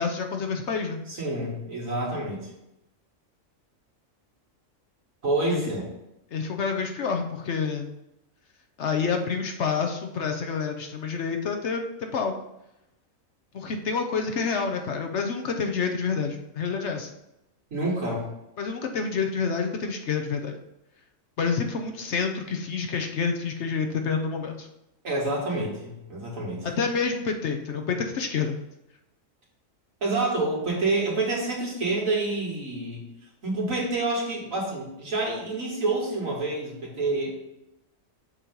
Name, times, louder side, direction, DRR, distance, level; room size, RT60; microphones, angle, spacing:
voice 1, 0.0-1.0 5.4-5.7 6.3-7.9 8.8-11.8 12.1-12.3 13.5-17.1 18.6-20.5 21.4-24.7 26.6-28.6, left 5 dB, 60° left, 4 dB, 0.9 m, -28 dB
voice 2, 1.1-2.5 5.2-5.9 17.7-18.3 25.0-26.6 30.0-33.0 33.4-37.4, right 2 dB, 70° right, -4 dB, 2.4 m, -28 dB
7.3 x 3.0 x 5.3 m, 0.87 s
omnidirectional pair, 1.4 m